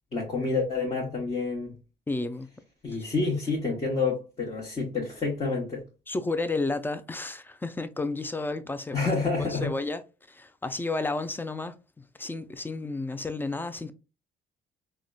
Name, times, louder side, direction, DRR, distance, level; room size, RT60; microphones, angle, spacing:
voice 1, 0.1-1.8 2.8-5.8 8.9-9.7, left 4 dB, 30° left, 1.0 m, -28 dB
voice 2, 2.1-2.5 6.1-9.1 9.4-10.0 10.3-11.8 12.2-13.9, left 3 dB, 10° left, 0.3 m, -32 dB
3.7 x 2.1 x 2.2 m
cardioid pair, 90°, 20 cm